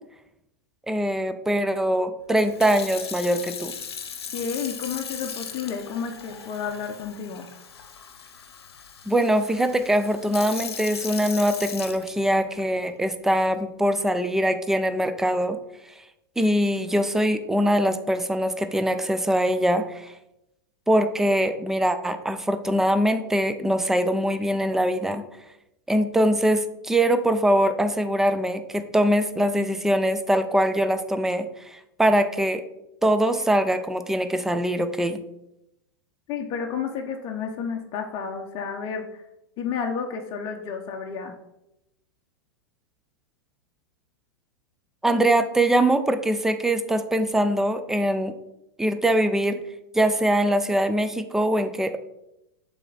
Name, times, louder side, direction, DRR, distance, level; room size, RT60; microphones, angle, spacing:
voice 1, 0.9-3.7 9.1-15.6 16.4-20.1 20.9-25.2 25.9-32.6 33.0-35.2 45.0-48.3 48.8-49.6 49.9-52.0, right 1 dB, 5° right, 10 dB, 0.4 m, -23 dB
Sink (filling or washing) / Fill (with liquid), 2.4-12.6 13.3-13.6, left 7 dB, 85° left, 0.8 m, -38 dB
voice 2, 4.3-7.5 36.3-39.2 39.6-41.3, left 6 dB, 40° left, 2 dB, 0.7 m, -31 dB
7.0 x 3.4 x 3.9 m, 0.87 s
hypercardioid pair, 110°, 13 cm